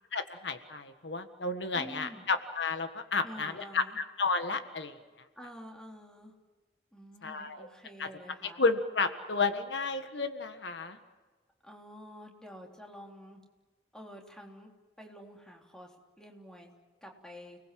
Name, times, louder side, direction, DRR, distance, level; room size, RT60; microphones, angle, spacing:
voice 1, 0.1-5.0 7.2-7.7 8.0-8.1 8.6-11.0, left 4 dB, 75° left, 8 dB, 1.7 m, -32 dB
voice 2, 1.7-2.3 3.2-4.0 5.3-6.3 6.9-8.6 11.6-13.4 13.9-14.7 15.0-16.7 17.0-17.6, equal, 5° left, 1 dB, 3.5 m, -48 dB
30.0 x 20.0 x 7.7 m, 1.3 s
head